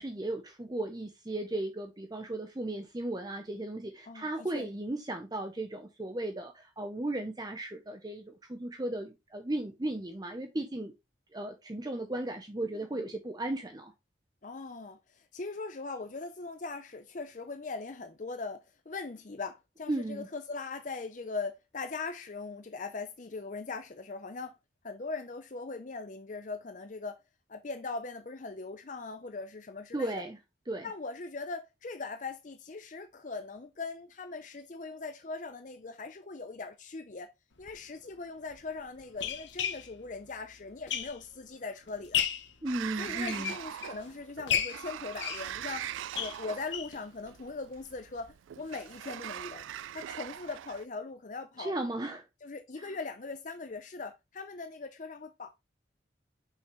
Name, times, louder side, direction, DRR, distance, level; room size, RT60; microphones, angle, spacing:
voice 1, 0.0-10.9 11.3-13.9 19.9-20.3 29.9-30.4 30.7-30.9 42.6-43.5 51.6-52.2 52.8-53.0, right 1 dB, 20° right, 0.6 m, -36 dB
voice 2, 4.1-4.7 12.7-12.9 14.4-24.6 24.8-27.2 27.5-30.2 30.8-37.3 37.6-42.3 43.0-45.9 46.2-49.6 49.9-51.8 52.4-55.5, left 3 dB, 40° left, 0.6 m, -40 dB
sound 1, 37.6-37.7 38.5-41.5 41.9-42.5 43.1-44.0 44.5-47.0 47.4-47.5 47.8-47.9 48.2-48.3, left 8 dB, 75° left, 1.0 m, -34 dB
Sliding door, 42.7-50.8, right 11 dB, 90° right, 0.3 m, -41 dB
6.3 x 5.6 x 3.0 m
head